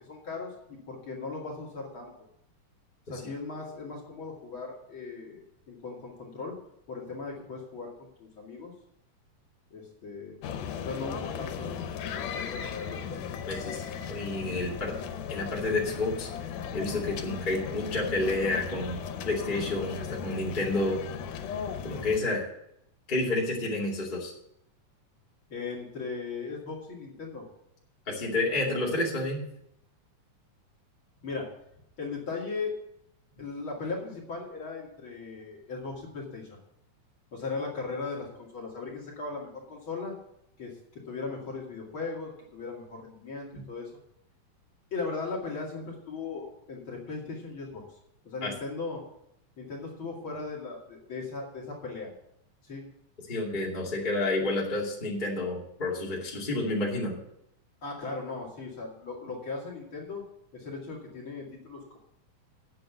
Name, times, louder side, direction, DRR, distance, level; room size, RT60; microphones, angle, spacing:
voice 1, 0.1-2.1 3.1-6.6 6.9-8.7 9.7-10.4 10.8-13.2 25.5-27.4 28.7-28.8 31.2-31.5 32.0-32.7 33.4-36.6 37.3-40.1 40.6-43.9 44.9-47.8 48.2-49.0 49.6-52.1 52.6-52.9 57.8-60.2 60.5-62.0, left 4 dB, 45° left, -3 dB, 2.9 m, -38 dB
sound 1, 10.4-22.2, left 7 dB, 90° left, 2.4 m, -37 dB
voice 2, 13.5-15.0 15.3-16.3 16.7-19.0 19.2-21.0 21.8-22.5 23.1-24.3 28.1-29.4 48.4-48.5 53.3-57.2, left 2 dB, 15° left, -4 dB, 2.4 m, -30 dB
9.2 x 7.7 x 8.0 m, 0.76 s
omnidirectional pair, 3.5 m